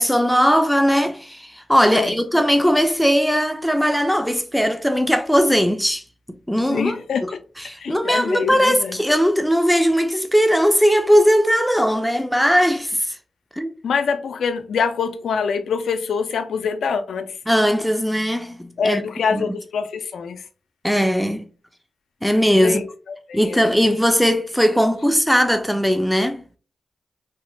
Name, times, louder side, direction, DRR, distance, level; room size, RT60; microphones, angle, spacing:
voice 1, 0.0-6.0 6.3-6.9 7.7-13.2 13.6-13.7 17.5-19.0 19.3-19.6 20.8-21.4 22.2-22.8 23.3-26.4, equal, ahead, 0.4 m, -19 dB
voice 2, 6.7-7.4 7.8-9.0 13.8-17.4 18.8-20.4 22.6-23.7, left 6 dB, 80° left, 0.3 m, -25 dB
3.1 x 2.0 x 3.0 m
supercardioid pair, 45°, 0 cm